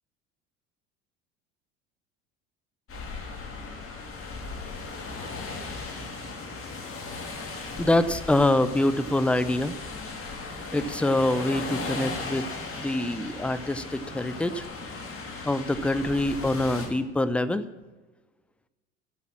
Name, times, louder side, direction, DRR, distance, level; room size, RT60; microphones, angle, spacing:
sound 1, 2.9-16.9, left 3 dB, 35° left, 3.2 m, -37 dB
voice 1, 7.8-9.8 10.7-12.5 12.8-14.6 15.5-17.7, left 1 dB, 5° left, 14 dB, 0.7 m, -25 dB
12.5 x 7.0 x 7.4 m, 1.2 s
hypercardioid pair, 65°, 37 cm